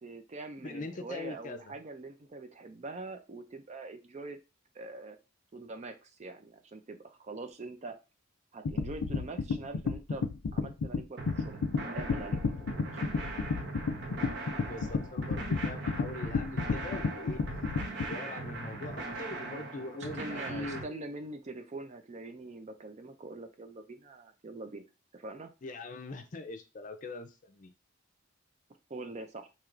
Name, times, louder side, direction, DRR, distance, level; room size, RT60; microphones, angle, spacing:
voice 1, 0.0-4.4 4.7-5.2 5.5-8.0 8.5-10.3 10.5-12.8 19.5-24.9 25.1-25.5 28.9-29.5, right 2 dB, 35° right, 0.4 m, -44 dB
voice 2, 0.6-1.7 14.6-17.4 18.1-21.0 25.6-27.7, left 2 dB, 40° left, 0.5 m, -42 dB
sound 1, 8.7-18.1, left 4 dB, 90° left, 0.4 m, -32 dB
sound 2, 11.2-20.8, right 2 dB, 55° right, 0.9 m, -40 dB
4.5 x 2.9 x 2.5 m
head